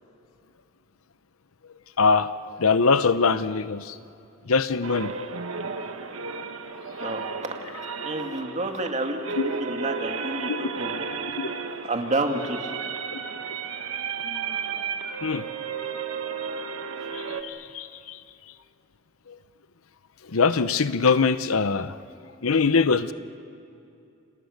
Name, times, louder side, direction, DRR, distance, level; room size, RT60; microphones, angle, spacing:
voice 1, 2.0-2.3 2.6-4.0 4.5-5.1 7.0-7.1 9.4-9.5 10.5-10.6 11.4-11.5 15.2-15.5 17.1-18.2 19.3-19.4 20.3-21.9 22.4-23.1, left 4 dB, 90° left, 13 dB, 0.8 m, -23 dB
sound 1, 4.8-17.4, right 5 dB, 80° right, 1.5 m, -33 dB
voice 2, 8.0-11.1 11.8-12.7, right 2 dB, 35° right, 3 dB, 2.4 m, -29 dB
29.5 x 27.5 x 6.7 m, 2.7 s
head